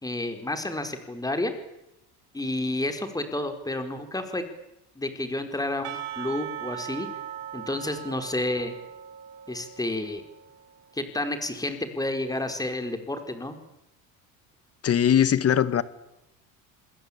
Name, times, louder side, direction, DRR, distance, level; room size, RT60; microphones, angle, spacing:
voice 1, 0.0-1.5 2.3-4.4 4.9-7.1 7.5-8.7 9.5-10.2 10.9-13.5, left 1 dB, 10° left, 4.6 m, -30 dB
Percussion / Church bell, 5.8-10.9, right 10 dB, 90° right, 4.3 m, -39 dB
voice 2, 14.8-15.8, left 9 dB, 40° left, 1.9 m, -20 dB
27.5 x 21.0 x 8.8 m
cardioid pair, 115°, 38 cm